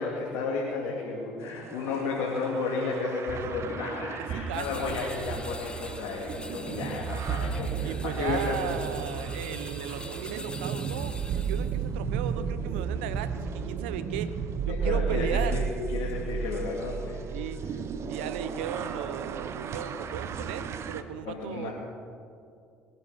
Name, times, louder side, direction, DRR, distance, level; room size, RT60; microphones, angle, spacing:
voice 1, 0.0-8.8 14.7-17.2 21.2-21.7, left 4 dB, 80° left, -3 dB, 2.4 m, -32 dB
sound 1, 1.4-21.0, right 6 dB, 55° right, 1.0 m, -34 dB
voice 2, 4.3-5.0 7.8-11.2 11.5-14.4 14.6-15.6 17.3-17.6 18.1-21.7, right 10 dB, 90° right, 13 dB, 0.7 m, -36 dB
sound 2, 4.5-11.8, left 2 dB, 15° left, 1.1 m, -45 dB
21.5 x 10.0 x 5.7 m, 2.4 s
hypercardioid pair, 65°, 6 cm